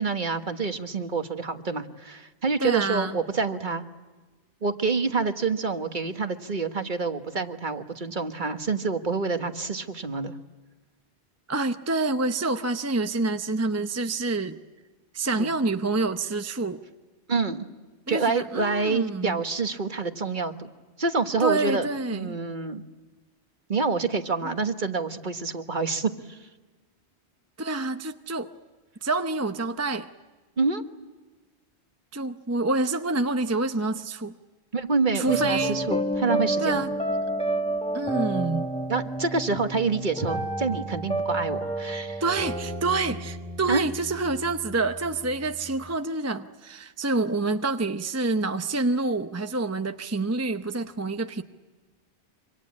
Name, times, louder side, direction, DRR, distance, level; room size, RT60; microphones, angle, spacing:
voice 1, 0.0-3.9 4.6-10.3 15.4-15.5 17.3-17.6 18.1-20.7 21.0-22.8 23.7-26.4 30.6-30.8 34.7-36.8 38.9-42.2 43.7-43.8, right 4 dB, 45° right, 7 dB, 1.5 m, -27 dB
voice 2, 2.6-3.2 11.5-14.6 15.1-16.8 18.1-19.4 21.4-22.4 27.6-28.5 29.0-30.1 32.1-34.4 35.1-35.9 36.6-36.9 37.9-38.7 42.2-51.4, right 3 dB, 15° right, 7 dB, 0.7 m, -27 dB
sound 1, 35.3-45.9, right 1 dB, 5° left, 1.3 m, -30 dB
26.5 x 25.5 x 8.6 m, 1.3 s
omnidirectional pair, 1.1 m